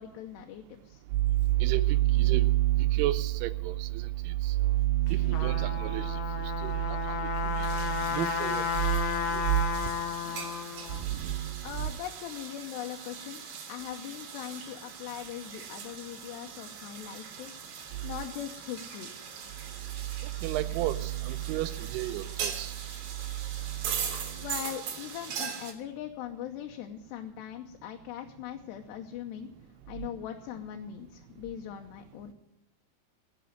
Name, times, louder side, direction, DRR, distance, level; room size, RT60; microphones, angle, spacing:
voice 1, 0.0-1.0 11.6-13.4 13.7-17.5 18.0-19.1 24.4-29.5 29.9-32.3, left 10 dB, 85° left, 3 dB, 3.1 m, -40 dB
voice 2, 1.1-9.6 10.9-11.9 20.4-22.8 23.7-24.5 30.0-30.1, right 16 dB, 85° right, 11 dB, 2.7 m, -29 dB
Trumpet, 5.1-11.0, left 7 dB, 60° left, 2.4 m, -33 dB
sound 1, 7.5-25.7, right 7 dB, 55° right, 2.6 m, -41 dB
16.0 x 6.9 x 9.2 m, 0.84 s
omnidirectional pair, 4.7 m